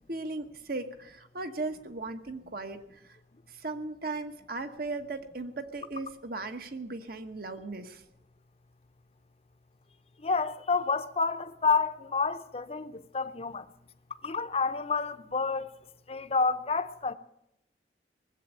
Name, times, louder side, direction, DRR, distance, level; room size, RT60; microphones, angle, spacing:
voice 1, 0.1-2.8 3.5-8.0, right 3 dB, 55° right, 1.2 m, -37 dB
voice 2, 10.2-13.7 14.2-15.7 16.1-17.1, left 4 dB, 35° left, 0.7 m, -29 dB
19.5 x 8.2 x 8.9 m
head